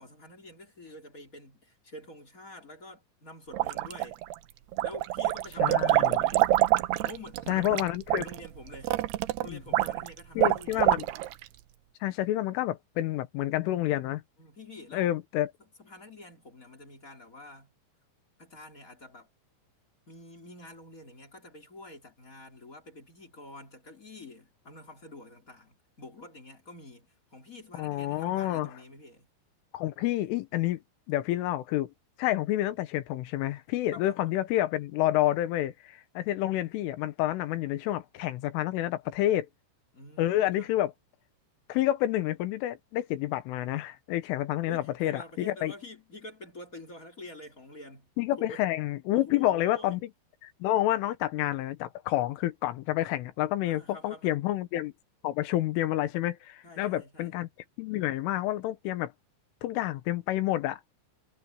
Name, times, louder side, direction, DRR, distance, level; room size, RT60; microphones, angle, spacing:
voice 1, 0.0-4.2 4.8-6.5 7.0-7.8 8.2-9.0 9.4-11.3 14.4-15.1 15.6-17.7 18.4-19.3 20.1-29.3 33.9-34.1 39.9-40.7 44.7-48.1 48.4-48.6 49.1-50.0 53.6-54.4 56.6-57.3, left 1 dB, 20° left, 2.7 m, -47 dB
sound 1, 3.5-4.3 4.7-11.4, right 16 dB, 80° right, 2.4 m, -26 dB
voice 2, 5.6-6.2 7.5-8.3 9.5-9.6 10.4-11.1 12.0-14.2 14.9-15.5 27.8-28.7 29.7-30.8 31.1-31.9 32.2-39.5 40.2-40.9 41.7-45.7 48.2-50.1 50.4-54.9 55.2-57.5 57.8-59.1 59.6-60.8, left 14 dB, 80° left, 3.7 m, -29 dB
omnidirectional pair, 5.7 m